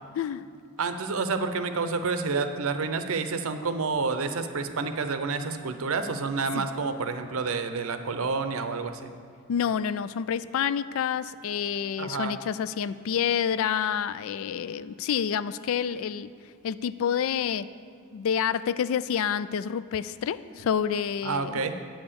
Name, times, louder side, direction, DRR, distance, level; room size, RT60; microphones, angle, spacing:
voice 1, 0.8-9.1 12.0-12.4 21.2-21.8, right 4 dB, 70° right, 8 dB, 0.6 m, -29 dB
voice 2, 9.5-16.3 16.6-17.7 18.1-21.5, left 8 dB, 65° left, 16 dB, 0.3 m, -28 dB
8.9 x 5.5 x 6.9 m, 2.3 s
head